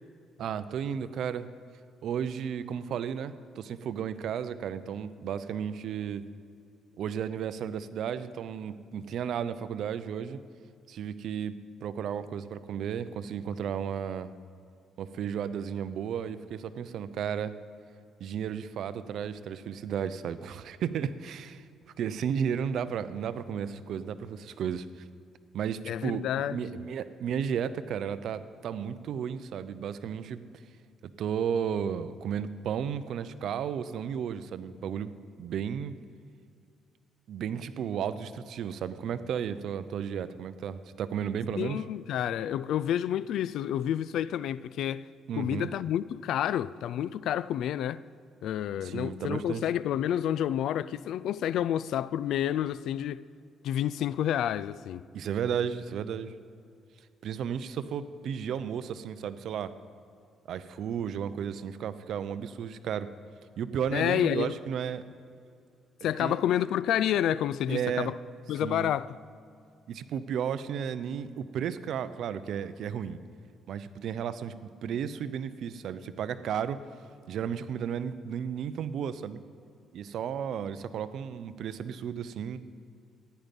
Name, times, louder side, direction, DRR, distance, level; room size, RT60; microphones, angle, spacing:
voice 1, 0.4-1.5 2.0-6.2 7.0-10.4 10.9-14.3 15.0-17.5 18.2-21.6 22.0-24.9 25.5-30.4 31.2-35.9 37.3-41.8 45.3-45.7 48.8-49.6 55.1-56.3 57.2-59.7 60.5-63.1 63.6-65.0 66.0-66.4 67.7-68.1 68.6-68.9 69.9-73.2 73.7-74.5 74.8-76.8 77.3-79.4 79.9-82.6, right 8 dB, 65° right, 0.6 m, -33 dB
voice 2, 25.9-26.6 41.6-45.1 45.4-48.0 48.4-53.2 53.6-55.1 63.9-64.6 66.0-68.1 68.5-69.2, left 10 dB, 75° left, 0.3 m, -29 dB
14.5 x 10.5 x 5.3 m
cardioid pair, 110°, 0 cm